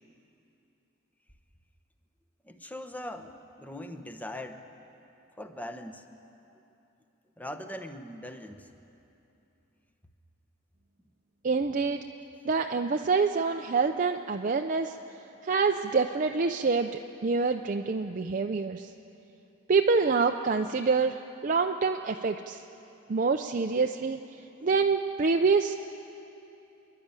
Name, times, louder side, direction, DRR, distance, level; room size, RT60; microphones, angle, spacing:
voice 1, 2.4-4.7 5.4-6.0 7.4-8.7, left 1 dB, 10° left, 7 dB, 0.9 m, -40 dB
voice 2, 11.4-12.1 12.4-15.0 15.4-18.9 19.7-22.6 23.1-24.2 24.6-25.7, right 4 dB, 40° right, 4 dB, 0.5 m, -26 dB
28.5 x 11.0 x 8.9 m, 2.9 s
head